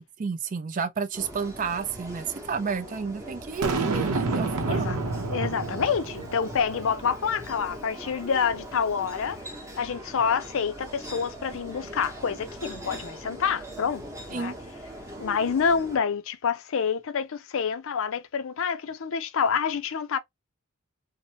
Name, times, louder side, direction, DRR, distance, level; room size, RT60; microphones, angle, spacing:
voice 1, 0.0-4.9 14.3-14.5, right 5 dB, 35° right, 0.4 m, -31 dB
sound 1, 1.1-16.0, right 1 dB, 15° right, 0.9 m, -41 dB
Boom, 3.6-6.9, right 3 dB, 80° right, 0.7 m, -29 dB
voice 2, 4.7-5.0 5.3-9.4 9.8-14.0 14.3-14.5 15.2-20.2, left 6 dB, 60° left, 0.4 m, -27 dB
2.8 x 2.1 x 2.7 m
head